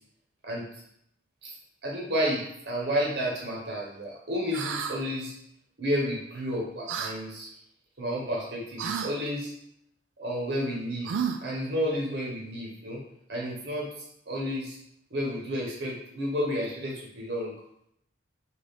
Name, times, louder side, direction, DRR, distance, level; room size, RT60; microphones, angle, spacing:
voice 1, 1.8-5.3 5.8-7.5 8.0-9.5 10.2-11.1 11.4-13.0 13.3-14.8 15.1-17.5, equal, 60° right, -3 dB, 0.8 m, -31 dB
sound 1, 4.5-5.0 6.9-7.1 8.8-9.1 11.0-11.6, right 7 dB, 80° right, 0.3 m, -31 dB
3.3 x 2.4 x 3.9 m, 0.74 s
head